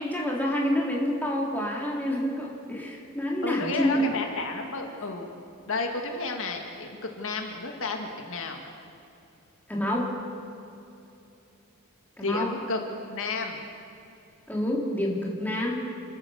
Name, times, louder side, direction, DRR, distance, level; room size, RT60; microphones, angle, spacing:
voice 1, 0.0-4.0 9.7-10.1 12.2-12.5 14.5-15.9, left 1 dB, 10° left, -3 dB, 3.3 m, -28 dB
voice 2, 3.4-5.3 5.7-8.6 12.2-12.8 13.1-13.6, left 3 dB, 65° left, 3 dB, 2.0 m, -32 dB
29.0 x 13.5 x 7.1 m, 2.8 s
head